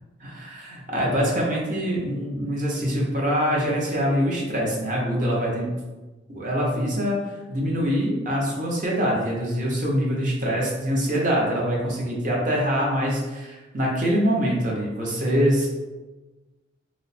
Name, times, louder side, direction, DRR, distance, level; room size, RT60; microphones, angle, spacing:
voice 1, 0.2-5.7 6.3-15.7, equal, 40° right, -3 dB, 0.7 m, -24 dB
3.0 x 2.0 x 4.0 m, 1.2 s
head